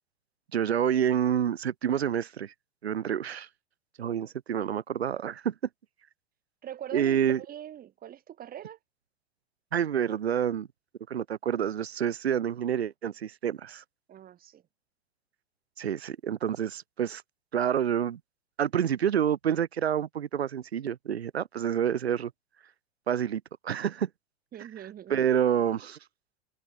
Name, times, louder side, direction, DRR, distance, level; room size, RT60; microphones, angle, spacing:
voice 1, 0.5-2.5 2.8-3.5 4.0-5.5 6.9-7.4 9.7-10.7 11.1-13.8 15.8-17.2 17.5-18.2 18.6-22.3 23.1-24.1 25.1-26.0, right 9 dB, 90° right, 1.6 m, -28 dB
voice 2, 6.6-8.8 14.1-14.6 24.5-25.2, right 11 dB, 30° right, 2.1 m, -42 dB
hypercardioid pair, 105°, 31 cm